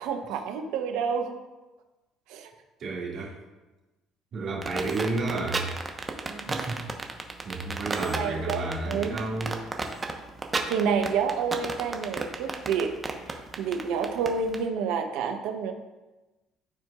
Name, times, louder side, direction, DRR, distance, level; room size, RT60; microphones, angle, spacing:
voice 1, 0.0-1.3 2.3-2.5 6.2-6.5 8.0-9.2 10.7-12.9 13.2-15.7, right 6 dB, 75° right, 5 dB, 0.8 m, -29 dB
voice 2, 2.8-3.3 4.3-5.7 6.5-6.8 7.5-9.6, right 2 dB, 55° right, -3 dB, 2.1 m, -31 dB
sound 1, 4.6-14.6, right 3 dB, 25° right, 1.0 m, -32 dB
12.5 x 4.5 x 2.4 m, 1.1 s
hypercardioid pair, 60°, 0 cm